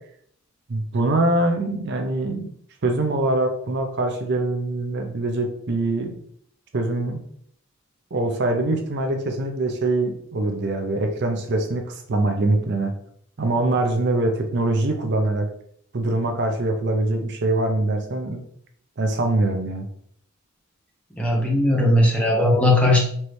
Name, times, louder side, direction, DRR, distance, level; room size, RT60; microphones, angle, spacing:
voice 1, 0.7-2.5 2.8-6.2 6.7-7.2 8.1-12.9 13.4-15.4 15.9-18.4 19.0-19.9, right 2 dB, 55° right, 4 dB, 0.6 m, -23 dB
voice 2, 21.2-23.0, left 1 dB, 5° left, -2 dB, 0.9 m, -18 dB
4.4 x 3.2 x 3.1 m, 0.65 s
head